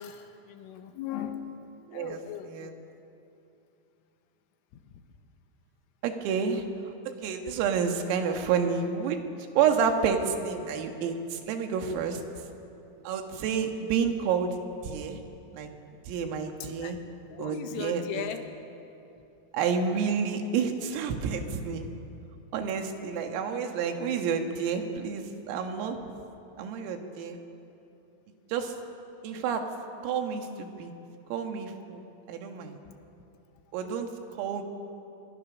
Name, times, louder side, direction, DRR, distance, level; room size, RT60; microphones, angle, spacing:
voice 1, 0.0-1.6 1.9-2.8 4.9-5.0 16.8-17.0 17.3-18.5, left 9 dB, 80° left, 7 dB, 3.6 m, -38 dB
voice 2, 1.9-2.7 6.0-9.2 9.6-12.2 13.1-14.6 14.8-15.2 15.5-15.7 16.1-17.0 17.4-18.3 19.5-21.9 22.5-26.0 26.6-27.4 28.5-28.8 29.2-29.7 30.0-30.9 31.3-32.0 32.3-32.8 33.7-34.1 34.4-34.6, right 6 dB, 80° right, 5 dB, 4.3 m, -29 dB
25.5 x 22.5 x 6.3 m, 2.8 s
omnidirectional pair, 5.9 m